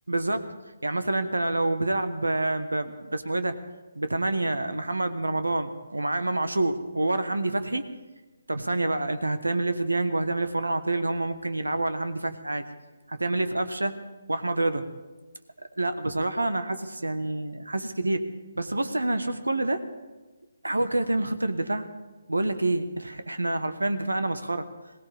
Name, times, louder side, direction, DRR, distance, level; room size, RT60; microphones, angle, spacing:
voice 1, 0.1-0.5 0.8-3.6 3.9-7.8 8.5-12.6 13.1-14.0 14.3-14.9 15.6-19.8 20.6-21.9 22.3-24.7, right 2 dB, 85° right, 11 dB, 1.3 m, -27 dB
22.0 x 17.5 x 3.6 m, 1.2 s
figure-of-eight pair, 145°, 0 cm